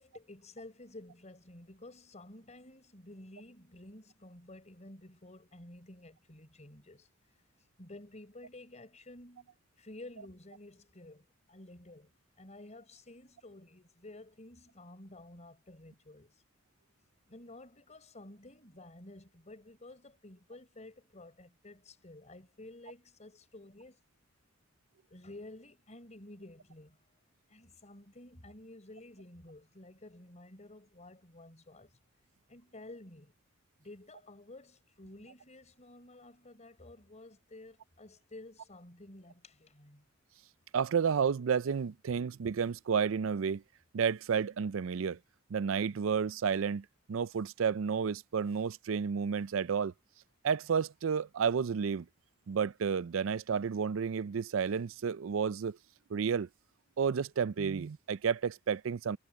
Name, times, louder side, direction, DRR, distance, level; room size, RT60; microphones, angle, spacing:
voice 1, 0.0-7.1 7.8-12.1 12.4-16.3 17.3-24.0 25.1-27.0 27.5-31.9 32.5-33.3 33.8-40.1, left 2 dB, 35° left, 4.3 m, -52 dB
voice 2, 40.7-43.6 43.9-45.2 45.5-49.9 50.4-52.1 52.5-55.8 56.1-56.5 57.0-59.2, right 6 dB, 85° right, 0.4 m, -31 dB
head